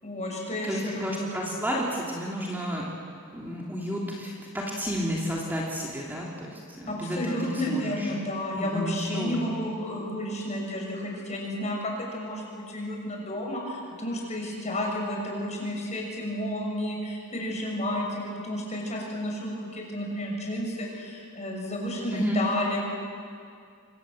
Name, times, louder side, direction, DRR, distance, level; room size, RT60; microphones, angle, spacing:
voice 1, 0.0-1.3 6.9-22.8, left 1 dB, 35° left, -1 dB, 6.6 m, -32 dB
voice 2, 0.6-2.9 3.3-8.1 8.5-9.6 22.1-22.4, equal, 10° right, -3 dB, 3.1 m, -31 dB
28.0 x 24.5 x 7.8 m, 2.4 s
head